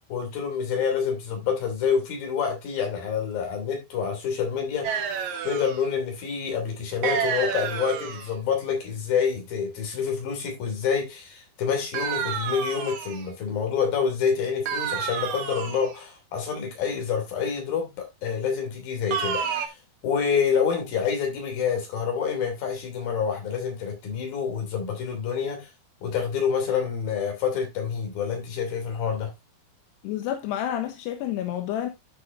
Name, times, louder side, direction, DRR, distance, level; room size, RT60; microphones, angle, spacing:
voice 1, 0.1-4.9 5.4-19.8 20.0-25.7 26.0-29.3, left 6 dB, 60° left, 4.7 m, -27 dB
sound 1, 4.8-5.9 7.0-8.3 11.9-13.3 14.7-15.9 19.1-19.7, right 7 dB, 60° right, 2.1 m, -29 dB
voice 2, 30.0-31.9, left 11 dB, 85° left, 3.2 m, -29 dB
12.0 x 6.7 x 2.7 m
omnidirectional pair, 4.7 m